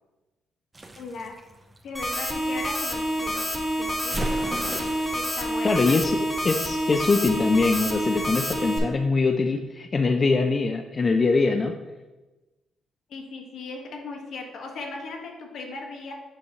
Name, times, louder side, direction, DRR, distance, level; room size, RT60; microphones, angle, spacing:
sound 1, 0.7-2.6 4.1-5.4, right 1 dB, 20° right, 0.6 m, -35 dB
voice 1, 1.0-1.3 1.8-3.4 3.8-5.8 13.1-16.1, left 3 dB, 65° left, 1 dB, 1.2 m, -38 dB
sound 2, 1.9-8.8, equal, 10° left, 1.2 m, -28 dB
voice 2, 5.6-11.7, left 3 dB, 35° left, 5 dB, 0.4 m, -23 dB
6.9 x 4.8 x 2.8 m, 1.1 s
cardioid pair, 90°, 0 cm